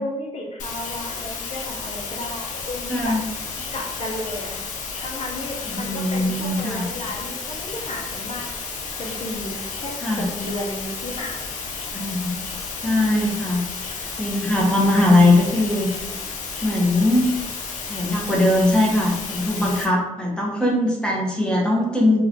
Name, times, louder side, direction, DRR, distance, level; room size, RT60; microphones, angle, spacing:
voice 1, 0.0-3.2 3.7-4.6 5.0-8.5 9.0-11.5, left 1 dB, 55° left, 0 dB, 0.8 m, -33 dB
sound 1, 0.6-19.8, left 4 dB, 90° left, 0.6 m, -32 dB
voice 2, 2.9-3.2 5.6-6.9 10.0-10.3 11.9-12.5 12.8-13.6 14.2-15.9 16.6-17.3 17.9-22.2, left 1 dB, 5° left, -3 dB, 1.0 m, -20 dB
3.0 x 2.5 x 3.6 m, 1.0 s
cardioid pair, 65°, 13 cm